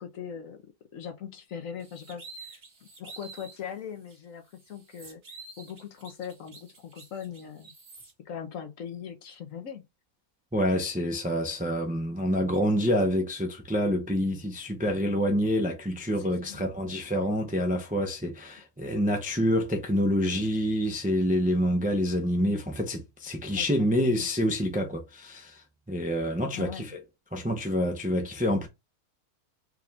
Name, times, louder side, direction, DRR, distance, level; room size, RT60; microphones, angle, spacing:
voice 1, 0.0-5.2 5.6-7.7 8.2-9.9 16.2-16.7 23.6-24.3 26.5-26.9, left 8 dB, 65° left, 1.1 m, -41 dB
sound 1, 1.8-3.6 4.1-4.2 4.5-8.1, right 4 dB, 60° right, 2.0 m, -48 dB
voice 2, 10.5-26.9 27.3-28.7, equal, 10° right, 0.5 m, -27 dB
4.9 x 2.4 x 3.4 m
omnidirectional pair, 1.6 m